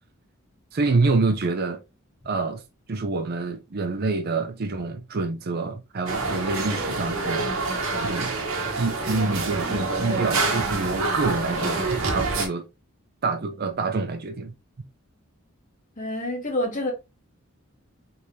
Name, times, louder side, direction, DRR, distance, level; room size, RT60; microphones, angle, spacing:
voice 1, 0.7-1.8 2.2-2.6 2.9-7.5 8.0-8.4 8.7-12.7 13.2-14.5, right 3 dB, 45° right, 0.5 m, -27 dB
sound 1, 6.1-12.5, right 3 dB, 70° right, 1.0 m, -26 dB
voice 2, 16.0-16.9, left 1 dB, 35° left, 1.2 m, -27 dB
3.5 x 3.1 x 2.6 m
head